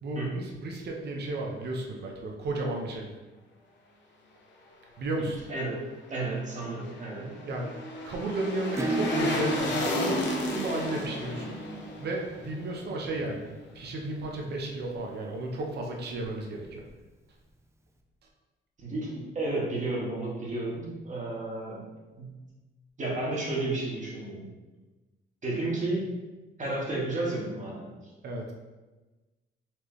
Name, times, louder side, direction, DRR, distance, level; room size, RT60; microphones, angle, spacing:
voice 1, 0.0-3.1 5.0-5.4 7.4-7.7 8.0-11.6 12.0-13.5 13.7-16.8 28.2-28.5, right 2 dB, 55° right, 0 dB, 0.8 m, -33 dB
voice 2, 5.2-7.3 18.8-21.8 22.2-22.4 23.0-24.5 25.4-26.1 26.6-27.9, right 2 dB, 40° right, -4 dB, 1.4 m, -32 dB
sound 1, 6.4-13.6 13.9-14.0, left 2 dB, 65° left, 0.9 m, -34 dB
Acoustic guitar / Strum, 8.7-14.0, right 2 dB, 15° right, 0.4 m, -35 dB
4.3 x 3.3 x 3.1 m, 1.2 s
cardioid pair, 90°, 20 cm